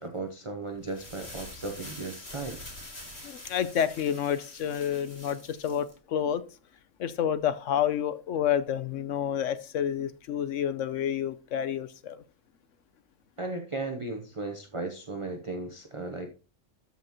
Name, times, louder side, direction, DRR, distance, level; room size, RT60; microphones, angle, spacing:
voice 1, 0.0-2.6 13.4-16.3, right 3 dB, 30° right, 4 dB, 0.9 m, -36 dB
sound 1, 0.7-5.9, left 1 dB, 60° left, 4.4 m, -45 dB
voice 2, 3.2-6.4 7.0-12.2, left 9 dB, 80° left, 13 dB, 1.1 m, -29 dB
13.5 x 5.7 x 3.0 m, 0.35 s
omnidirectional pair, 1.3 m